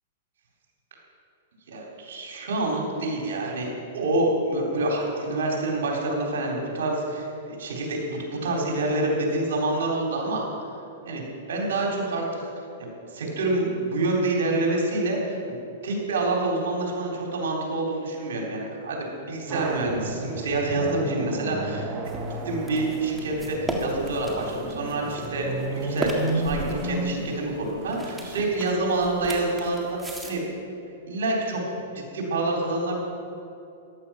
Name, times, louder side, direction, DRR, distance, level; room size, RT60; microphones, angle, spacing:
voice 1, 1.7-10.4 11.0-11.2 11.5-12.4 12.8-15.6 15.8-21.9 22.5-30.4 31.1-31.6 31.9-33.0, right 2 dB, 80° right, -1 dB, 3.9 m, -27 dB
sound 1, 19.5-28.8, right 1 dB, 25° right, 1.6 m, -33 dB
sound 2, 22.1-30.3, right 1 dB, 5° right, 1.9 m, -36 dB
14.5 x 11.5 x 5.9 m, 2.6 s
hypercardioid pair, 140°, 0 cm